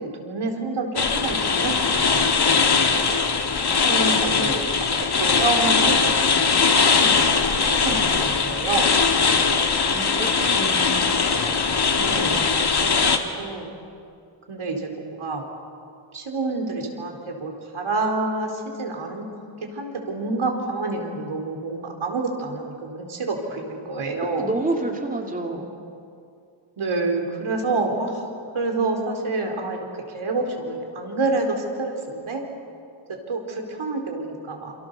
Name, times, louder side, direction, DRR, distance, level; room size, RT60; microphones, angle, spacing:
voice 1, 0.0-1.7 2.2-3.1 3.9-4.6 4.9-9.0 12.0-12.5 12.8-13.7 14.5-15.4 16.1-19.3 19.6-24.5 26.8-28.2 28.5-32.4 33.3-34.7, right 3 dB, 75° right, 2 dB, 4.6 m, -28 dB
sound 1, 0.9-13.2, left 5 dB, 55° left, 2.2 m, -20 dB
voice 2, 9.9-11.1 24.4-25.7, right 2 dB, 15° right, 1 dB, 2.7 m, -28 dB
29.0 x 28.0 x 7.0 m, 2.5 s
wide cardioid pair, 130°, 49 cm